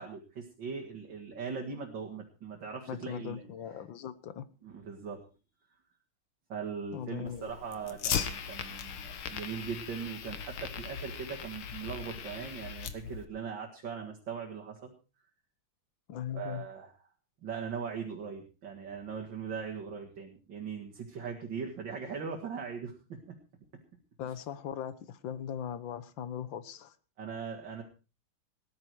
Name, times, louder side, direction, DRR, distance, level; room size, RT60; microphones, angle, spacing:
voice 1, 0.0-3.4 4.6-5.2 6.5-14.9 16.3-16.9 17.4-23.3 27.2-27.8, right 6 dB, 60° right, 2.6 m, -40 dB
voice 2, 2.9-4.5 6.9-7.5 16.1-16.7 24.2-27.0, left 9 dB, 70° left, 1.7 m, -39 dB
Fire, 7.3-13.3, left 8 dB, 90° left, 2.2 m, -38 dB
18.5 x 11.0 x 4.6 m
omnidirectional pair, 2.3 m